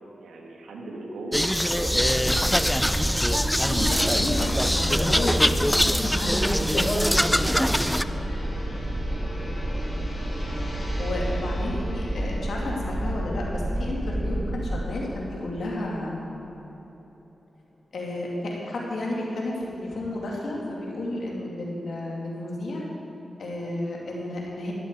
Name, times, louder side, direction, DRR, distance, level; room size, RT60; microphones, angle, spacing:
voice 1, 0.2-2.4 10.9-12.0, right 1 dB, 85° right, 0 dB, 1.5 m, -39 dB
sound 1, 1.3-8.0, equal, 5° left, 0.4 m, -23 dB
sound 2, 1.9-14.8, right 1 dB, 15° right, 1.0 m, -30 dB
voice 2, 3.6-7.6 11.0-16.3 17.9-22.8 23.4-24.7, left 1 dB, 75° left, -3 dB, 2.6 m, -31 dB
Gong, 4.0-16.1 16.4-16.7, left 1 dB, 35° left, 3.1 m, -43 dB
12.5 x 11.0 x 4.8 m, 3.0 s
cardioid pair, 45°, 0 cm